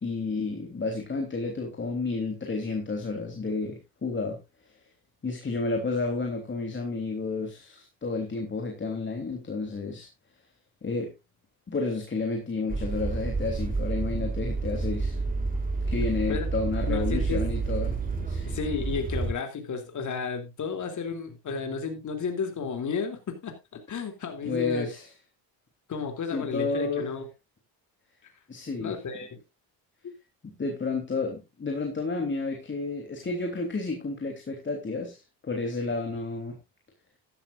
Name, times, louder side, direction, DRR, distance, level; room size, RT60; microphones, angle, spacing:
voice 1, 0.0-4.4 5.2-10.1 10.8-11.1 11.7-15.2 15.9-17.9 18.2-18.5 24.4-25.1 26.3-27.1 28.5-28.9 30.4-36.6, left 3 dB, 30° left, 3 dB, 3.3 m, -31 dB
sound 1, 12.7-19.3, right 3 dB, 20° right, 3.4 m, -29 dB
voice 2, 16.9-17.4 18.4-24.9 25.9-27.3 28.8-29.3 30.0-30.1, left 5 dB, 45° left, 6 dB, 3.0 m, -32 dB
14.0 x 12.0 x 2.5 m, 0.24 s
cardioid pair, 95°, 41 cm